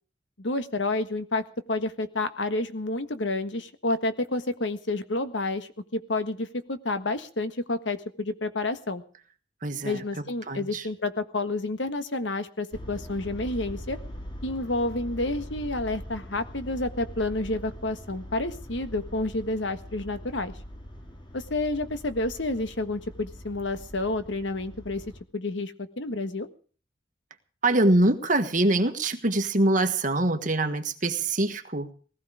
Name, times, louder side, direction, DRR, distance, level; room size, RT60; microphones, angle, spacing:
voice 1, 0.4-9.0 9.8-14.0 14.4-20.5 21.3-25.0 25.3-26.5, left 2 dB, 70° left, 10 dB, 1.5 m, -29 dB
voice 2, 9.6-10.0 10.5-10.9 27.6-31.9, right 2 dB, 45° right, 7 dB, 1.7 m, -24 dB
sound 1, 12.7-25.2, equal, 25° left, 2.3 m, -42 dB
19.0 x 14.5 x 5.0 m, 0.42 s
head